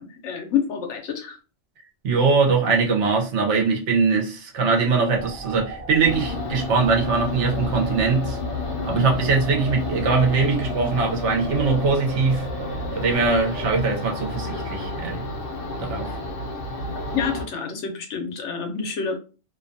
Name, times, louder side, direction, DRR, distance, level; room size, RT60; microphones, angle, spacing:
voice 1, 0.0-1.4 17.1-19.2, left 7 dB, 80° left, 1.0 m, -28 dB
voice 2, 2.0-8.4 8.8-12.5 12.9-15.2 15.8-16.2, right 4 dB, 75° right, 1.0 m, -21 dB
sound 1, 5.1-13.8, right 1 dB, 35° right, 0.6 m, -37 dB
sound 2, 6.0-17.5, left 2 dB, 60° left, 0.7 m, -31 dB
2.7 x 2.2 x 2.6 m
omnidirectional pair, 1.2 m